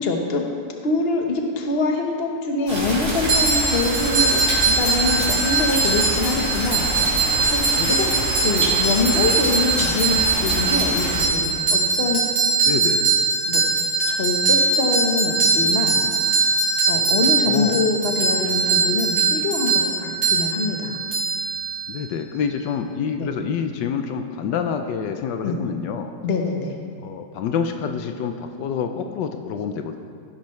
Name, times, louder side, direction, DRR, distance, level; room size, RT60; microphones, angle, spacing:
voice 1, 0.0-0.5 0.8-6.9 7.5-8.1 8.4-12.2 13.4-13.6 14.1-16.0 16.9-21.0 23.2-23.3 25.4-25.6 26.2-26.7, left 3 dB, 40° left, 2 dB, 1.1 m, -24 dB
sound 1, 2.7-11.2, right 1 dB, 45° right, 3.3 m, -27 dB
sound 2, 3.3-22.1, right 4 dB, 75° right, 2.9 m, -21 dB
voice 2, 12.7-13.2 17.5-17.8 21.9-26.1 27.0-30.0, left 6 dB, 80° left, 6 dB, 1.3 m, -27 dB
16.5 x 10.0 x 3.1 m, 2.2 s
omnidirectional pair, 1.9 m